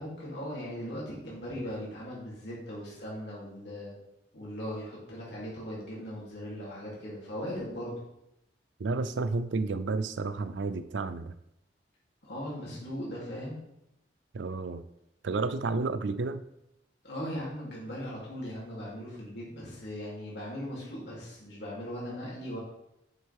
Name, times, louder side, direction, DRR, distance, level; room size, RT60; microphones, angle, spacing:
voice 1, 0.0-3.9 4.3-7.9 12.2-13.6 17.0-22.6, equal, 70° left, -6 dB, 2.9 m, -39 dB
voice 2, 8.8-11.3 14.3-14.8 15.2-16.4, right 3 dB, 90° right, 12 dB, 0.5 m, -31 dB
7.6 x 6.3 x 3.5 m, 0.83 s
head